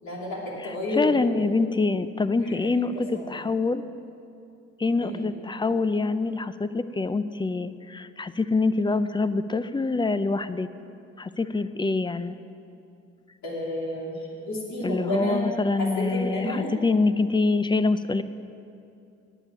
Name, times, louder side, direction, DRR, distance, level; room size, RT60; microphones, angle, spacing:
voice 1, 0.0-1.5 2.4-2.6 3.1-3.4 5.0-5.3 13.4-15.4 15.8-16.7, left 1 dB, 70° left, -4 dB, 3.1 m, -31 dB
voice 2, 0.6-3.8 4.8-10.7 11.2-12.4 14.8-18.2, left 3 dB, 15° left, 13 dB, 0.5 m, -25 dB
10.0 x 8.2 x 8.9 m, 2.6 s
cardioid pair, 90°, 30 cm